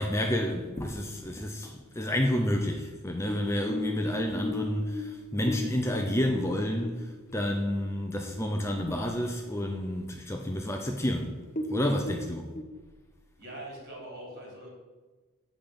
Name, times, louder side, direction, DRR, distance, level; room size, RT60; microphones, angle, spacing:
voice 1, 0.0-11.4 11.7-12.5, equal, 10° left, 2 dB, 0.6 m, -30 dB
sound 1, 2.4-8.0 8.4-8.5 8.9-9.4 9.8-9.9 10.6-10.7 10.9-11.1 11.4-12.6, left 2 dB, 40° left, 0.9 m, -38 dB
voice 2, 13.4-14.7, right 1 dB, 50° right, -3 dB, 3.3 m, -42 dB
8.0 x 5.2 x 7.0 m, 1.3 s
head